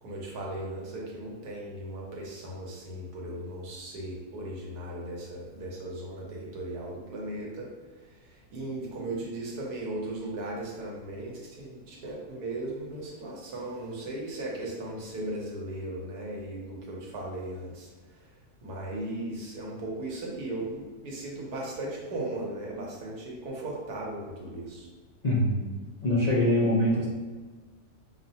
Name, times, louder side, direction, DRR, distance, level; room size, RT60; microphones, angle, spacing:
voice 1, 0.0-7.7 8.0-18.3 18.6-24.9, right 1 dB, 85° right, -3 dB, 1.4 m, -37 dB
voice 2, 25.2-25.6 26.0-27.1, left 1 dB, 60° left, -8 dB, 0.4 m, -23 dB
5.8 x 2.1 x 2.7 m, 1.3 s
omnidirectional pair, 1.6 m